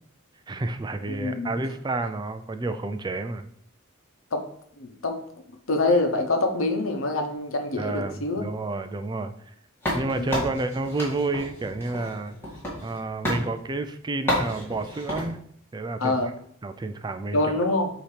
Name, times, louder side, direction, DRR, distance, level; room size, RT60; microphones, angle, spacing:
voice 1, 0.5-3.5 7.8-9.3 9.9-12.3 12.8-15.4 15.7-16.2 16.6-17.4, right 2 dB, 20° right, 9 dB, 0.3 m, -30 dB
voice 2, 1.1-1.6 4.3-4.4 4.8-5.2 5.7-8.4 10.2-10.5 16.0-16.3 17.3-17.9, left 2 dB, 75° left, 5 dB, 1.0 m, -25 dB
sound 1, 9.8-13.0 13.2-13.5 14.3-15.3, left 1 dB, 10° left, 2.0 m, -30 dB
8.2 x 2.9 x 4.9 m, 0.66 s
head